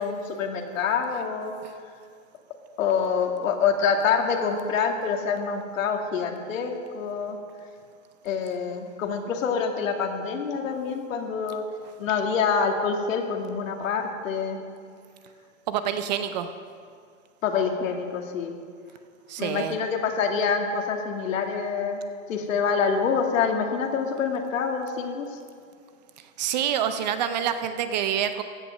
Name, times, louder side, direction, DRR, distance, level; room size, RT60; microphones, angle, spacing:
voice 1, 0.0-1.5 2.8-7.4 8.2-11.6 12.0-14.6 17.4-18.5 19.4-22.0 22.3-25.3, left 6 dB, 70° left, 3 dB, 2.2 m, -26 dB
voice 2, 15.7-16.5 19.3-19.8 26.4-28.4, right 9 dB, 35° right, 10 dB, 0.5 m, -27 dB
15.5 x 10.0 x 6.4 m, 2.2 s
supercardioid pair, 160°, 40 cm